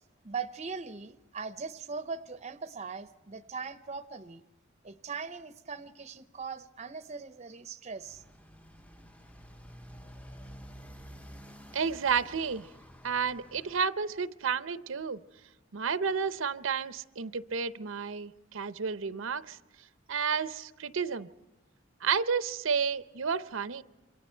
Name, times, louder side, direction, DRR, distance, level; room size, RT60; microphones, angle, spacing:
voice 1, 0.2-4.4 4.8-8.2, right 5 dB, 35° right, 13 dB, 0.7 m, -40 dB
Motorcycle, 8.0-13.9, equal, 5° left, 0.7 m, -50 dB
voice 2, 11.7-12.7 13.0-15.2 15.7-19.6 20.1-21.3 22.0-23.8, right 6 dB, 80° right, 13 dB, 0.7 m, -31 dB
27.5 x 23.5 x 4.4 m, 1.0 s
head